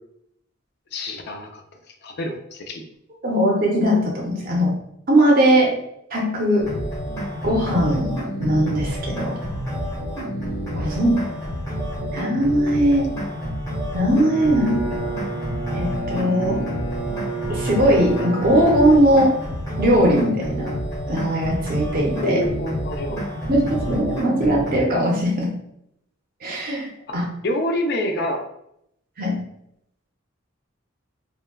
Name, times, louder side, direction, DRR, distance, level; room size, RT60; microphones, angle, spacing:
voice 1, 0.9-1.6 2.0-2.8 22.2-23.2 27.1-27.2 27.4-28.4, left 1 dB, 55° left, 4 dB, 0.4 m, -26 dB
voice 2, 3.2-4.8 5.1-5.8 6.1-6.7 7.4-9.4 10.7-11.3 12.0-13.1 13.9-15.1 15.7-16.6 17.5-19.4 19.8-20.8 21.1-22.4 23.5-25.6 26.4-27.3 29.2-29.4, equal, 45° right, -2 dB, 0.5 m, -20 dB
sound 1, 6.6-24.8, equal, 15° left, 0.8 m, -29 dB
Bowed string instrument, 14.1-19.6, right 2 dB, 80° left, 0.8 m, -31 dB
3.4 x 2.1 x 2.2 m, 0.76 s
head